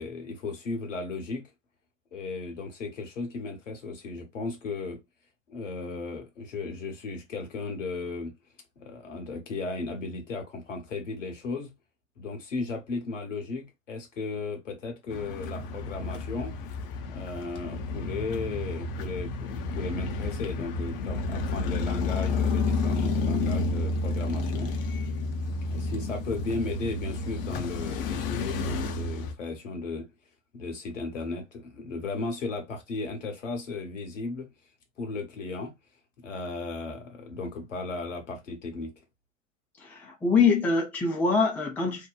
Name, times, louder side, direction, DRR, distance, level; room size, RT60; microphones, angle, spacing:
voice 1, 0.0-1.5 2.1-5.0 5.5-8.3 8.8-11.7 12.2-16.5 17.0-24.7 25.7-30.1 30.5-34.5 35.0-35.7 36.2-38.9, left 3 dB, 70° left, 1.1 m, -35 dB
sound 1, 15.1-29.3, left 3 dB, 45° left, 0.7 m, -30 dB
voice 2, 39.8-42.1, left 4 dB, 5° left, 0.4 m, -24 dB
2.8 x 2.2 x 2.2 m
figure-of-eight pair, 90°, 39 cm